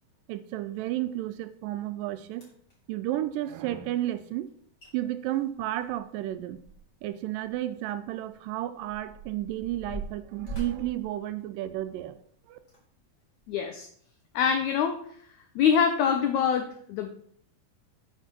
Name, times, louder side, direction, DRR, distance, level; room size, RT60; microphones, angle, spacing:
voice 1, 0.3-2.4 2.9-4.5 4.9-6.6 7.0-12.2 12.5-12.6, right 14 dB, 80° right, 12 dB, 2.1 m, -32 dB
sound 1, 2.3-2.8 4.5-4.6 4.8-4.9 5.3-7.1 7.4-7.5 8.2-12.0 12.6-12.8 13.4-13.5, right 3 dB, 30° left, 3.2 m, -42 dB
voice 2, 13.5-13.9 14.3-15.0 15.5-17.1, left 7 dB, 85° left, 6 dB, 1.6 m, -24 dB
8.3 x 5.3 x 6.0 m, 0.62 s
omnidirectional pair, 4.1 m